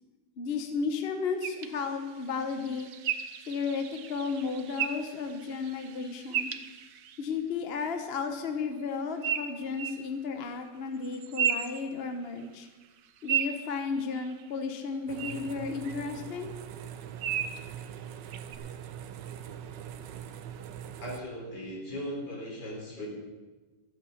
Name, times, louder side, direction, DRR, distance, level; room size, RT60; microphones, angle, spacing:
voice 1, 0.4-2.9 3.5-6.5 7.2-12.7 13.2-16.5, left 5 dB, 40° left, 6 dB, 1.0 m, -33 dB
sound 1, 1.4-7.3 9.2-10.0 11.0-12.5 12.8-14.5 15.2-15.3 15.8-15.9 17.2-17.6 18.3-18.6, right 8 dB, 65° right, 1.2 m, -34 dB
sound 2, 15.1-21.2, right 9 dB, 85° right, 1.4 m, -42 dB
voice 2, 21.0-23.1, equal, 70° left, -2 dB, 4.2 m, -38 dB
13.5 x 8.0 x 7.1 m, 1.2 s
omnidirectional pair, 1.9 m